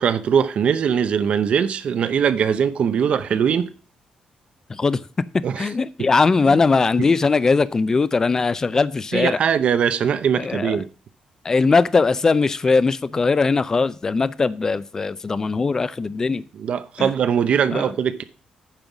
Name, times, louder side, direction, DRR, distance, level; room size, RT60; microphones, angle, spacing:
voice 1, 0.0-3.7 5.4-5.7 6.0-6.1 6.5-6.6 7.0-7.1 9.1-10.9 16.5-18.2, right 7 dB, 50° right, 0.6 m, -21 dB
voice 2, 4.7-5.0 5.6-9.4 10.3-10.8 11.4-16.4 17.0-17.1 17.7-17.9, left 4 dB, 25° left, 0.4 m, -20 dB
9.0 x 5.5 x 6.0 m
cardioid pair, 150°, 2 cm